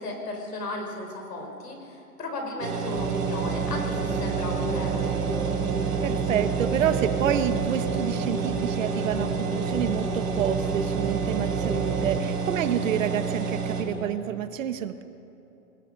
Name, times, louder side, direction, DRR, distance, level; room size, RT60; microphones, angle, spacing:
voice 1, 0.0-5.2, left 2 dB, 85° left, 2 dB, 5.1 m, -35 dB
sound 1, 2.6-13.8, right 5 dB, 75° right, 4.6 m, -29 dB
sound 2, 3.0-12.2, right 5 dB, ahead, 0.9 m, -31 dB
voice 2, 6.0-15.0, right 9 dB, 55° right, 10 dB, 1.3 m, -29 dB
26.5 x 20.0 x 5.4 m, 2.9 s
hypercardioid pair, 145°, 46 cm